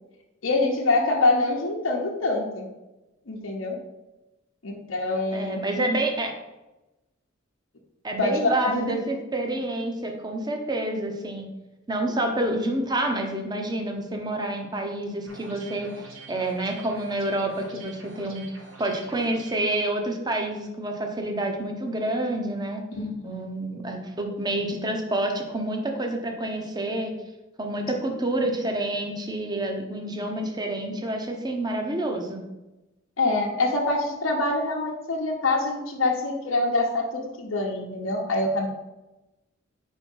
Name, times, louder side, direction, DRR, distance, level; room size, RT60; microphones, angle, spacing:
voice 1, 0.4-2.6 3.3-3.8 4.6-5.6 8.2-9.0 22.9-23.4 33.2-38.7, left 2 dB, 80° left, -1 dB, 0.9 m, -25 dB
voice 2, 5.3-6.3 8.0-11.5 11.9-18.4 18.8-22.8 23.2-27.1 27.6-32.4, right 1 dB, 20° right, 3 dB, 0.8 m, -28 dB
sound 1, 15.3-19.7, right 3 dB, 70° right, 1.1 m, -46 dB
4.7 x 4.5 x 5.4 m, 1.0 s
head